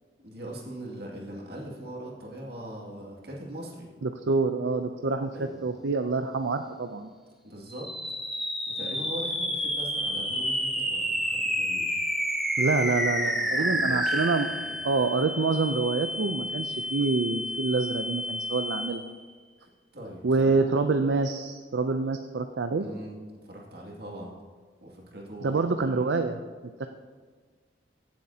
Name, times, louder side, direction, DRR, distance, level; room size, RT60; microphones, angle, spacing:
voice 1, 0.2-3.9 5.3-5.6 7.4-7.9 8.7-11.9 13.2-14.1 14.5-14.8 19.6-20.7 22.8-23.2 23.4-24.3 24.8-25.6, right 1 dB, 60° right, -2 dB, 2.3 m, -41 dB
voice 2, 4.0-7.1 12.6-14.5 14.8-19.0 20.2-22.9 25.4-26.4 26.8-26.9, right 3 dB, 75° right, 7 dB, 0.5 m, -26 dB
sound 1, 7.7-19.2, equal, ahead, 0.9 m, -30 dB
16.0 x 7.5 x 2.8 m, 1.5 s
head